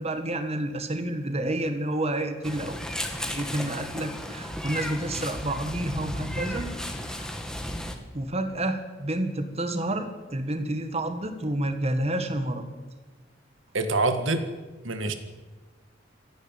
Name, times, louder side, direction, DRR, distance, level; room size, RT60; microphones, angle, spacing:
voice 1, 0.0-6.7 7.0-7.3 8.1-12.7, right 1 dB, 35° right, 8 dB, 1.7 m, -30 dB
Meow, 2.4-7.9, left 1 dB, 5° left, 2.0 m, -34 dB
voice 2, 13.7-14.5 14.8-15.1, right 2 dB, 85° right, 8 dB, 1.8 m, -25 dB
27.0 x 11.0 x 9.0 m, 1.3 s
head